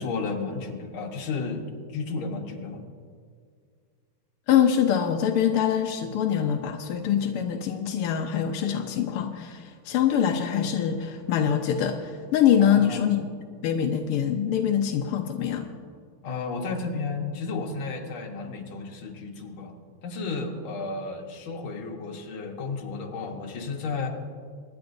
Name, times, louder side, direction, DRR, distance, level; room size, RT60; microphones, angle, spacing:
voice 1, 0.0-1.7 1.9-2.8 12.6-13.1 16.2-19.7 20.0-24.1, left 4 dB, 70° left, 1 dB, 2.1 m, -33 dB
voice 2, 4.5-13.3 13.6-15.7, left 9 dB, 90° left, 4 dB, 1.6 m, -24 dB
24.5 x 10.5 x 2.6 m, 2.1 s
omnidirectional pair, 2.4 m